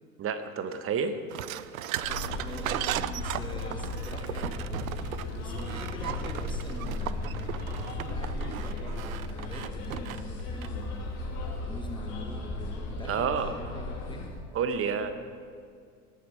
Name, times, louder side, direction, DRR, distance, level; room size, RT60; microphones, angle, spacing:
voice 1, 0.2-1.2 13.1-13.5 14.5-15.1, right 6 dB, 30° right, 9 dB, 1.1 m, -29 dB
sound 1, 1.3-10.9, right 13 dB, 70° right, 0.6 m, -36 dB
sound 2, 2.0-14.3, left 2 dB, 55° left, 3.2 m, -35 dB
voice 2, 2.2-2.8 3.1-4.9 5.3-7.4 7.8-11.1 11.6-14.3, left 1 dB, 10° left, 2 dB, 1.2 m, -44 dB
18.0 x 8.9 x 5.5 m, 2.2 s
figure-of-eight pair, 75°, 43 cm